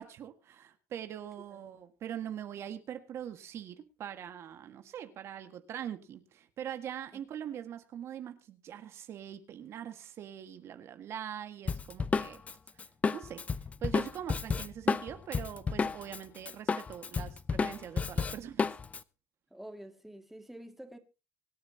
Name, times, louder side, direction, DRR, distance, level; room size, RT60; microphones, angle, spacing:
voice 1, 0.0-12.4 13.1-13.4 13.8-18.7, right 9 dB, 55° right, 1.7 m, -42 dB
Drum kit, 11.7-16.2 16.5-19.0, left 5 dB, 25° left, 0.7 m, -31 dB
voice 2, 19.5-21.0, right 1 dB, 5° right, 2.2 m, -48 dB
24.5 x 9.6 x 2.8 m
cardioid pair, 120°, 5 cm